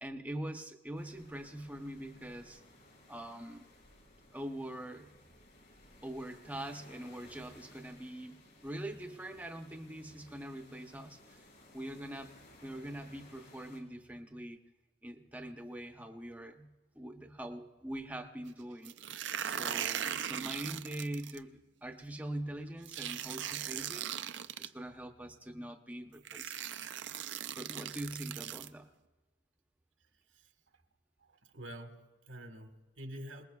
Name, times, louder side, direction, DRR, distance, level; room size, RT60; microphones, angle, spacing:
voice 1, 0.0-2.6 3.1-3.6 4.3-5.1 6.0-11.4 11.7-12.4 12.6-14.6 15.0-19.0 19.4-24.1 24.6-26.7 27.5-28.9, right 1 dB, 10° right, 5 dB, 0.8 m, -43 dB
sound 1, 0.9-13.8, left 1 dB, 55° left, 3.8 m, -59 dB
sound 2, 18.8-21.4 22.9-24.7 25.7-25.8 26.2-28.7, right 10 dB, 65° right, 0.5 m, -39 dB
voice 2, 30.0-30.8 31.2-33.5, equal, 85° right, 5 dB, 1.5 m, -48 dB
27.0 x 20.0 x 2.3 m, 1.2 s
head